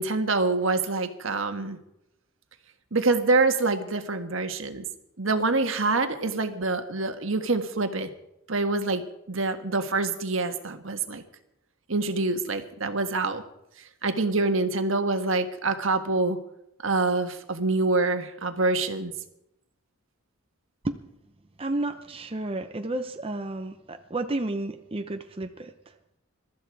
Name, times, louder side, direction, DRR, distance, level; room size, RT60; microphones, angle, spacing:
voice 1, 0.0-1.8 2.9-4.8 5.2-8.1 8.5-11.2 11.9-13.4 14.0-16.4 16.8-19.1, right 3 dB, 70° right, 7 dB, 1.5 m, -26 dB
voice 2, 21.6-25.7, right 2 dB, 25° right, 6 dB, 0.7 m, -31 dB
22.5 x 13.5 x 4.7 m, 0.83 s
head